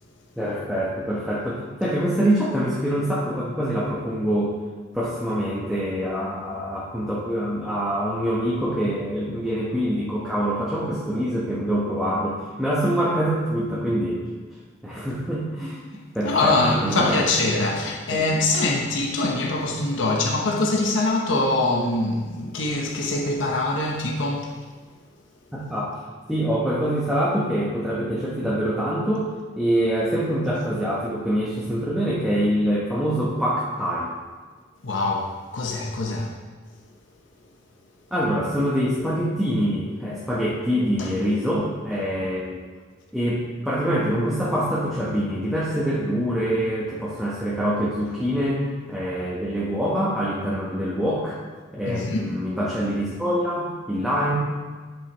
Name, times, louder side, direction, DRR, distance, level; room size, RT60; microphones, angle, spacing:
voice 1, 0.4-4.5 4.9-14.2 14.8-17.3 18.1-18.2 25.5-26.0 26.3-29.3 29.6-34.1 38.1-42.6 43.1-51.4 51.7-54.3, equal, ahead, -7 dB, 1.0 m, -25 dB
voice 2, 16.2-24.5 34.8-36.3 41.0-41.1 51.9-52.3, left 2 dB, 70° left, 0 dB, 0.8 m, -23 dB
10.0 x 5.6 x 3.0 m, 1.4 s
head